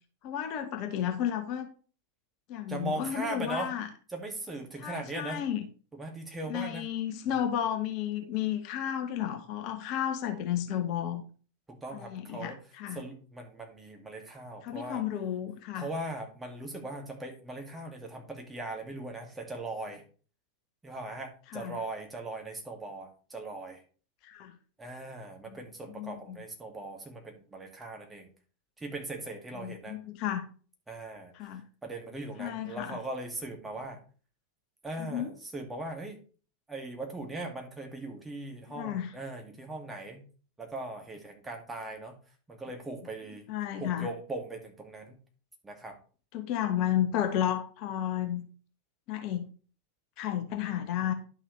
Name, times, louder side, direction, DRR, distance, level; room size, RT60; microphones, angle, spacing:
voice 1, 0.2-1.7 2.5-3.9 4.8-5.6 6.5-11.2 11.9-13.0 14.6-15.9 21.5-21.8 24.2-24.5 25.5-25.6 26.0-26.4 29.6-30.4 31.3-31.6 32.4-33.0 35.0-35.3 38.8-39.1 43.5-44.1 46.3-48.4 49.1-49.5 50.2-51.1, left 10 dB, 45° left, 6 dB, 1.2 m, -32 dB
voice 2, 2.7-3.7 4.1-5.4 5.9-6.9 7.2-7.4 11.7-12.6 12.9-15.0 15.7-20.0 20.8-23.8 24.8-28.3 28.8-30.0 30.9-31.5 31.8-34.0 34.8-36.2 36.7-40.2 40.6-42.1 42.5-43.5 43.8-45.2 45.6-46.0, right 2 dB, 10° right, 2 dB, 2.3 m, -39 dB
11.0 x 6.4 x 3.4 m, 0.38 s
figure-of-eight pair, 85°, 0 cm